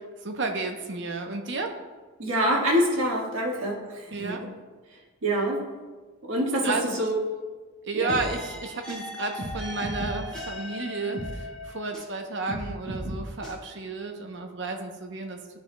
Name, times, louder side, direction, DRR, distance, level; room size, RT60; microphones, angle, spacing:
voice 1, 0.2-1.7 4.1-4.4 6.6-7.0 7.8-15.4, right 3 dB, 55° right, 4 dB, 0.7 m, -32 dB
voice 2, 2.2-4.3 5.2-5.6 6.3-7.2 7.9-8.1, equal, 75° right, -2 dB, 1.5 m, -25 dB
sound 1, 8.1-12.2 12.5-13.5, equal, 5° left, 1.9 m, -36 dB
12.0 x 4.8 x 2.2 m, 1.4 s
head